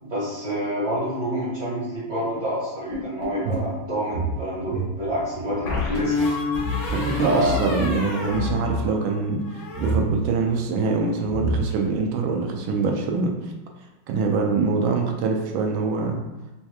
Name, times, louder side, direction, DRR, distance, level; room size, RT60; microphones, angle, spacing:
voice 1, 0.0-6.1 7.0-7.8, right 1 dB, 50° right, -10 dB, 1.8 m, -27 dB
sound 1, 2.9-3.8 5.6-9.1 9.4-9.9, left 3 dB, 85° left, 1.9 m, -29 dB
sound 2, 3.4-5.9 6.2-6.3 6.5-6.8 7.4-7.9 8.2-8.8 9.7-10.1 10.9-11.0 11.3-11.9, right 1 dB, 65° right, 1.2 m, -28 dB
voice 2, 6.9-13.5 14.1-16.2, right 4 dB, 85° right, 2 dB, 1.4 m, -24 dB
4.2 x 2.8 x 2.3 m, 1.1 s
omnidirectional pair, 2.1 m